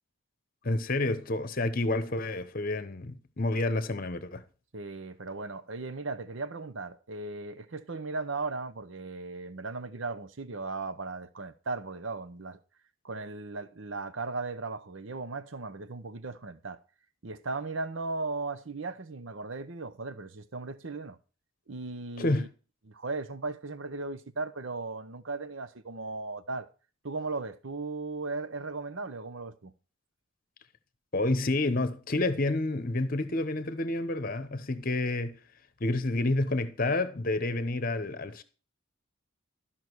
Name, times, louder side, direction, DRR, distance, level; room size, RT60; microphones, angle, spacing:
voice 1, 0.6-4.4 22.2-22.5 31.1-35.4 35.8-38.4, left 2 dB, 40° left, 1.0 m, -29 dB
voice 2, 4.7-12.6 13.0-16.8 17.2-21.2 21.7-22.5 22.9-26.7 27.0-29.7, right 3 dB, 60° right, 0.9 m, -37 dB
13.0 x 5.8 x 4.6 m
head